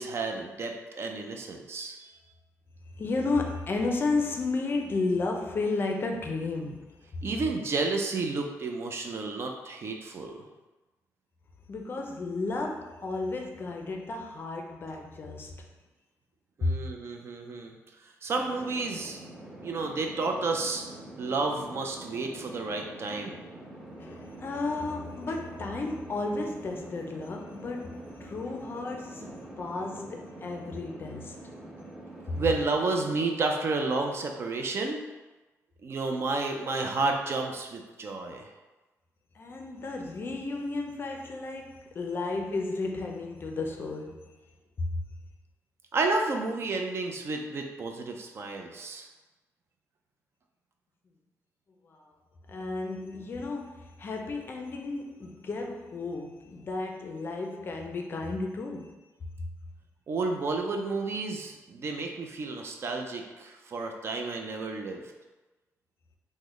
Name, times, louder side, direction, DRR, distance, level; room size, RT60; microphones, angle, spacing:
voice 1, 0.0-2.2 7.2-10.4 16.6-17.7 18.0-19.2 19.6-20.8 21.2-23.4 32.4-35.0 35.8-38.5 45.9-49.1 60.1-65.0, right 3 dB, 50° right, 0.4 m, -31 dB
voice 2, 2.9-7.0 11.7-15.7 16.6-16.8 24.0-31.4 39.3-44.4 44.8-44.9 51.8-52.1 52.5-59.0, left 3 dB, 40° left, 0.4 m, -33 dB
sound 1, 18.4-33.2, right 1 dB, 10° right, 0.8 m, -45 dB
3.7 x 2.1 x 3.1 m
cardioid pair, 110°, 6 cm